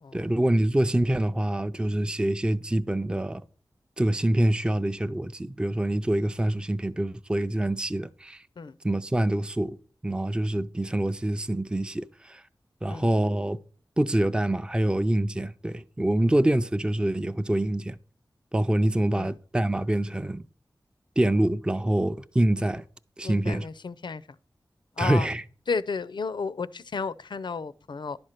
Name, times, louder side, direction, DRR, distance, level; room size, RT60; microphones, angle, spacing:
voice 1, 0.1-3.4 4.0-8.4 8.8-9.8 10.0-12.4 12.8-13.6 14.0-18.0 18.5-20.4 21.2-22.8 23.2-23.7 25.0-25.4, right 1 dB, 10° right, 0.4 m, -25 dB
voice 2, 23.2-24.2 25.0-25.3 25.7-28.2, left 4 dB, 75° left, 0.4 m, -32 dB
11.0 x 4.3 x 6.5 m
wide cardioid pair, 60°, 8 cm